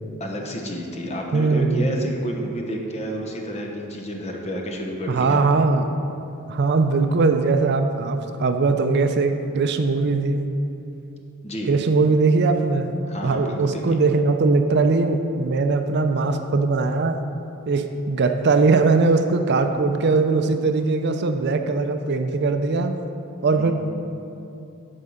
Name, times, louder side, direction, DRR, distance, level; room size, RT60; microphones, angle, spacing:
voice 1, 0.2-5.5 11.4-11.7 13.1-13.8 23.6-23.7, equal, 30° left, 1 dB, 1.0 m, -30 dB
voice 2, 1.3-2.1 5.1-5.9 6.5-10.5 11.7-12.9 13.2-17.2 17.7-23.0 23.4-23.7, right 3 dB, 50° right, 7 dB, 0.5 m, -20 dB
11.5 x 4.7 x 5.6 m, 2.8 s
head